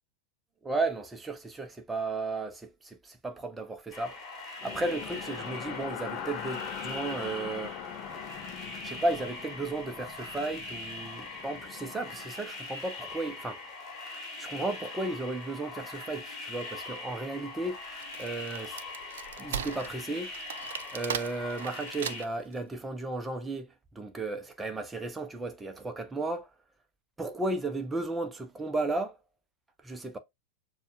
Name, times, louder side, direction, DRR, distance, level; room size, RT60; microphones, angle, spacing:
voice 1, 0.6-7.8 8.8-13.6 14.4-17.8 18.2-18.8 19.4-20.3 20.9-23.7 23.9-26.5 27.2-29.2 29.8-30.2, right 2 dB, 10° right, 0.7 m, -34 dB
sound 1, 3.9-22.2, left 3 dB, 25° left, 1.6 m, -42 dB
sound 2, 4.6-12.6, left 8 dB, 40° left, 0.7 m, -42 dB
Wood, 17.8-22.5, right 9 dB, 60° right, 0.4 m, -38 dB
6.7 x 2.4 x 2.6 m
figure-of-eight pair, 90°, 0 cm